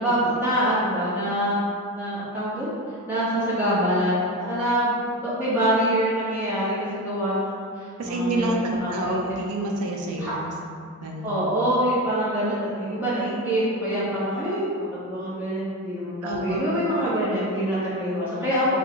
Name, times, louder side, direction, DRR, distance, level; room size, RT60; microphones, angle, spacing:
voice 1, 0.0-1.7 1.9-9.2 10.2-10.3 11.2-18.8, equal, 10° right, -11 dB, 1.0 m, -25 dB
voice 2, 8.0-10.5 11.0-11.3 16.2-16.6, right 2 dB, 85° right, 1 dB, 0.5 m, -28 dB
3.3 x 2.2 x 3.8 m, 2.2 s
head